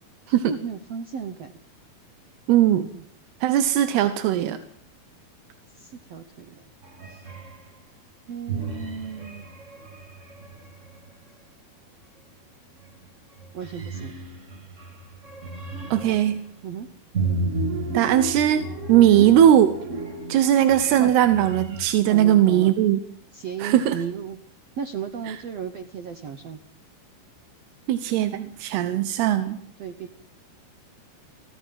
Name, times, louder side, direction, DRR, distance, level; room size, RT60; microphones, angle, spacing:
voice 1, 0.3-1.5 2.9-3.0 5.8-6.6 7.1-7.2 8.3-9.4 13.5-14.1 16.0-16.2 16.6-16.9 19.0-19.3 21.0-21.1 22.1-22.8 23.3-24.4 24.8-26.6 29.8-30.1, right 6 dB, 75° right, 8 dB, 1.5 m, -34 dB
voice 2, 2.5-2.9 3.4-4.6 15.9-16.4 17.9-19.7 20.3-23.0 23.6-24.0 25.3-25.4 27.9-29.6, right 11 dB, 90° right, 10 dB, 3.1 m, -19 dB
sound 1, 6.8-7.7 8.5-11.1 12.8-13.1 13.4-16.4 17.1-21.9, right 3 dB, 55° right, 0.8 m, -33 dB
24.0 x 16.0 x 7.6 m, 0.64 s
omnidirectional pair, 4.5 m